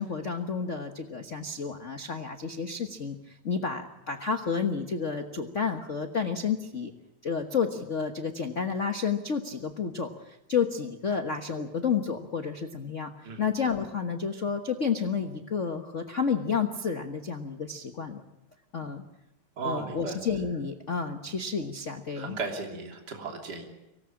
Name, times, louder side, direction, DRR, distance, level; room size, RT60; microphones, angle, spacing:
voice 1, 0.0-6.9 7.2-18.2 18.7-19.0 19.6-22.4, left 6 dB, 50° left, 6 dB, 0.8 m, -31 dB
voice 2, 19.6-20.2 21.2-21.4 22.2-23.7, right 4 dB, 35° right, 2 dB, 3.5 m, -35 dB
25.0 x 18.0 x 8.8 m, 0.96 s
omnidirectional pair, 3.3 m